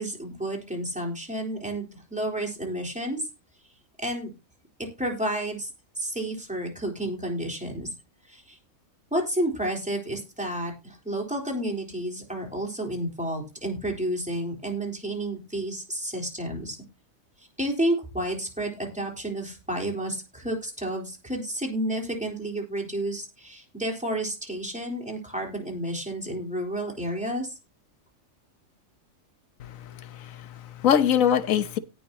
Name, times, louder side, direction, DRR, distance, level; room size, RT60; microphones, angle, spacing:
voice 1, 0.0-3.3 4.0-4.3 5.0-5.7 6.0-7.9 8.3-8.6 9.1-16.8 17.4-27.5, right 1 dB, 5° right, 3.7 m, -31 dB
voice 2, 29.6-31.8, left 9 dB, 75° left, 1.3 m, -24 dB
18.0 x 6.0 x 2.9 m
omnidirectional pair, 1.4 m